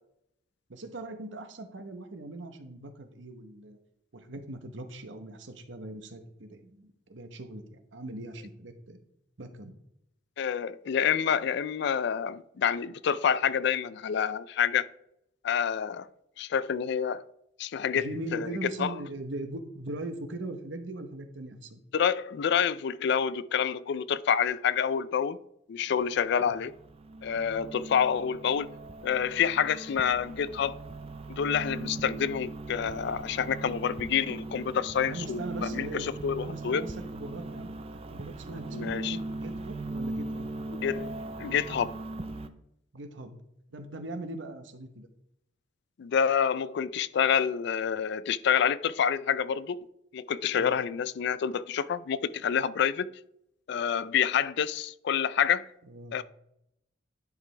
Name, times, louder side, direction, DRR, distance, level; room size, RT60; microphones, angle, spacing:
voice 1, 0.7-3.8 4.1-9.0 9.4-9.7 17.9-21.8 26.4-26.6 35.0-36.1 36.4-37.8 38.1-40.5 42.9-43.4 43.7-45.1 50.5-50.8 55.8-56.2, right 2 dB, 75° right, 1.0 m, -40 dB
voice 2, 10.4-14.9 15.4-16.1 16.4-17.2 17.6-18.1 18.3-18.9 21.9-25.4 25.7-26.7 27.2-28.7 29.0-30.8 31.3-36.8 38.7-39.2 40.8-41.1 41.4-42.0 46.0-49.8 50.1-53.1 53.7-55.7 56.1-56.2, left 7 dB, 65° left, 0.4 m, -28 dB
sound 1, 26.0-42.5, right 2 dB, 35° right, 0.5 m, -39 dB
10.5 x 5.0 x 3.3 m
head